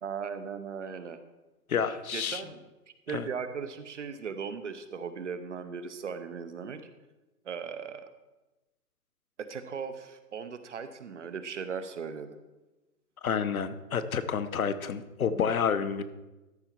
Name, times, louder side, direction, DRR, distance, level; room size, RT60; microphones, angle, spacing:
voice 1, 0.0-1.2 1.9-2.6 3.1-6.8 7.4-8.1 9.4-12.4, right 6 dB, 50° right, 10 dB, 0.8 m, -38 dB
voice 2, 1.7-2.4 3.1-3.3 13.2-16.0, left 6 dB, 60° left, 12 dB, 0.9 m, -29 dB
13.0 x 5.6 x 4.4 m, 1.1 s
hypercardioid pair, 155°, 47 cm